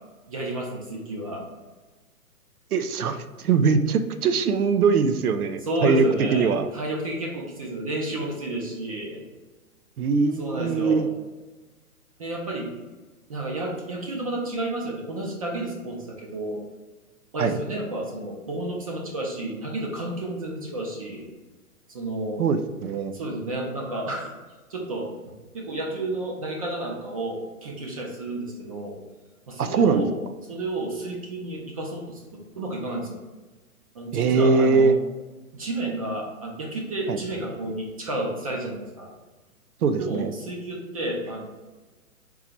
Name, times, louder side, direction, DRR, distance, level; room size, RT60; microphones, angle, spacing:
voice 1, 0.3-1.4 5.6-9.2 10.4-11.0 12.2-12.7 13.3-16.6 17.3-21.3 21.9-22.4 23.1-24.3 24.7-29.0 29.5-30.2 30.5-33.2 33.9-35.0 35.5-39.1 40.0-41.4, right 1 dB, 25° right, -1 dB, 0.5 m, -31 dB
voice 2, 2.7-6.7 10.0-11.1 17.4-17.6 22.4-23.1 29.6-30.1 34.1-35.0 37.1-37.2 39.8-40.3, right 5 dB, 80° right, 9 dB, 0.6 m, -22 dB
3.8 x 2.9 x 4.3 m, 1.2 s
hypercardioid pair, 140°, 45 cm